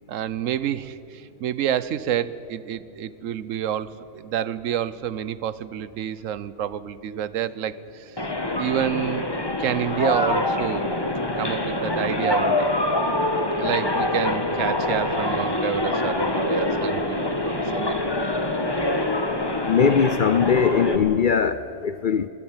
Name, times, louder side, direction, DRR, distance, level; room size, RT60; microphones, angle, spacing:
voice 1, 0.1-8.2 8.6-9.3 9.6-10.9 11.3-12.7 13.6-17.9 18.2-18.3, right 10 dB, 80° right, 1.1 m, -28 dB
sound 1, 8.2-21.0, left 1 dB, 20° left, 1.5 m, -25 dB
voice 2, 19.7-22.3, left 6 dB, 50° left, 0.6 m, -20 dB
20.5 x 17.5 x 8.8 m
omnidirectional pair, 1.3 m